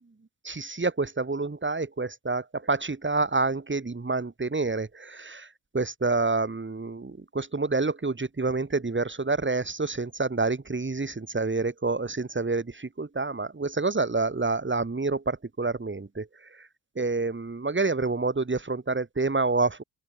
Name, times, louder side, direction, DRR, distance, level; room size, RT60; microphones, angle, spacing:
voice 1, 0.4-5.5 5.7-16.7 17.0-19.8, right 3 dB, 25° right, 7.3 m, -28 dB
open air
figure-of-eight pair, 45°, 48 cm